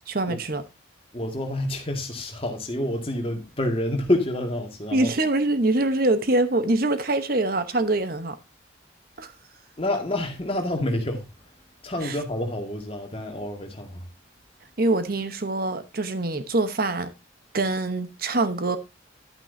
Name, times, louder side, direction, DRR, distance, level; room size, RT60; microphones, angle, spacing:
voice 1, 0.1-0.6 4.9-8.4 9.2-9.3 12.0-12.2 14.8-17.1 17.5-18.8, right 2 dB, 50° right, 0.9 m, -24 dB
voice 2, 1.1-5.1 9.8-11.3 11.8-14.0, left 1 dB, 30° left, 1.9 m, -28 dB
11.5 x 9.1 x 2.6 m
head